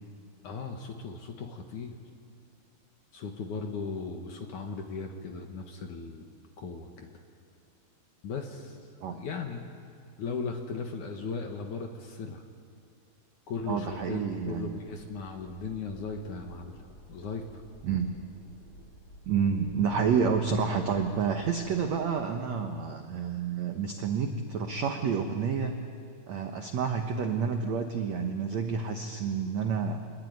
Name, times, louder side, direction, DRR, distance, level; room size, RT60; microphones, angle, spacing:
voice 1, 0.4-2.0 3.1-6.2 6.6-7.1 8.2-8.8 9.1-9.6 10.2-12.4 13.5-16.8 17.1-17.6, left 4 dB, 60° left, 3 dB, 2.4 m, -37 dB
sound 1, 13.7-22.0, equal, 25° left, 7.7 m, -52 dB
voice 2, 13.7-14.7 17.8-18.1 19.3-25.8 26.3-30.0, right 6 dB, 75° right, 4 dB, 1.6 m, -29 dB
26.0 x 21.0 x 9.5 m, 2.3 s
omnidirectional pair, 4.9 m